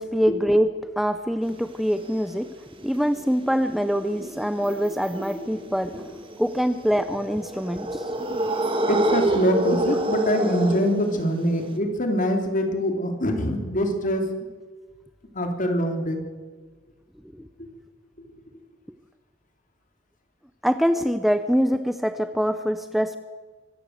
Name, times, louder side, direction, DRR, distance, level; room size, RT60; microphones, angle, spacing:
voice 1, 0.0-2.5 2.8-6.0 6.4-8.2 17.3-17.5 20.6-23.2, equal, ahead, 10 dB, 0.6 m, -24 dB
sound 1, 1.4-11.8, right 1 dB, 30° right, 2.1 m, -28 dB
voice 2, 8.9-14.3 15.3-16.2 17.6-17.7 18.2-18.3, equal, 45° left, 4 dB, 3.2 m, -24 dB
24.5 x 14.0 x 8.0 m, 1.4 s
head